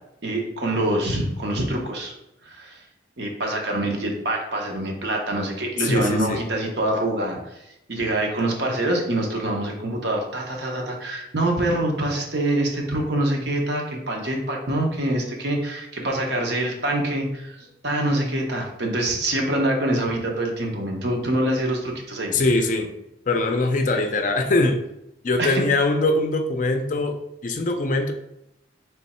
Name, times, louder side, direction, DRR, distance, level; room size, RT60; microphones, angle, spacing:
voice 1, 0.2-2.1 2.4-2.8 3.2-7.5 7.9-17.6 17.8-22.3 25.4-25.6, right 1 dB, 60° right, 1 dB, 0.9 m, -25 dB
voice 2, 5.8-6.4 22.3-22.9 23.3-24.8 25.2-27.1 27.4-28.1, left 2 dB, 45° left, 6 dB, 0.4 m, -22 dB
3.5 x 3.1 x 4.2 m, 0.83 s
head